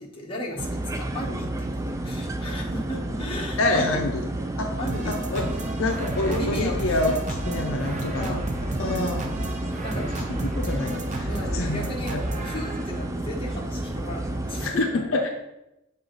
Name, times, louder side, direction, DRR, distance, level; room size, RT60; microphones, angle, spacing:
voice 1, 0.0-4.0 4.8-5.2 6.3-6.8 8.2-9.1 9.8-10.1 11.3-12.1 12.4-15.0, left 1 dB, 25° left, -2 dB, 1.1 m, -35 dB
sound 1, 0.6-14.7, right 1 dB, 15° right, 0.3 m, -31 dB
voice 2, 3.6-4.2 4.6-4.8 5.1-5.5 5.8-8.4 8.8-9.2 10.3-12.2 14.6-15.3, left 2 dB, 60° left, 3 dB, 0.6 m, -27 dB
sound 2, 4.9-13.1, right 1 dB, 35° right, 0.7 m, -33 dB
7.5 x 4.0 x 3.9 m, 0.91 s
head